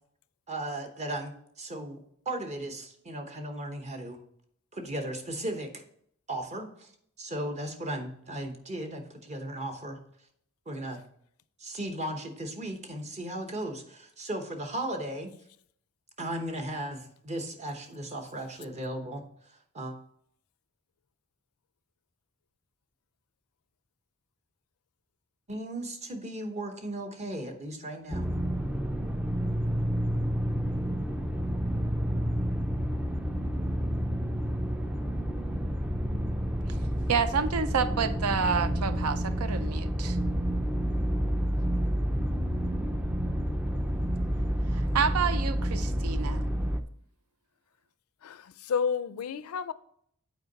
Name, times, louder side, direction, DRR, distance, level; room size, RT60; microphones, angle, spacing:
voice 1, 0.5-2.0 2.3-4.2 4.7-5.8 6.3-6.9 7.2-10.0 10.7-11.0 11.6-15.3 16.2-19.2 19.7-19.9 25.5-28.3, right 1 dB, 30° right, 0.9 m, -36 dB
sound 1, 28.1-46.8, equal, 5° right, 0.4 m, -29 dB
voice 2, 37.1-40.2 44.7-46.5, right 6 dB, 90° right, 0.5 m, -29 dB
voice 3, 48.2-49.7, left 6 dB, 75° left, 0.4 m, -31 dB
8.1 x 4.6 x 4.0 m
head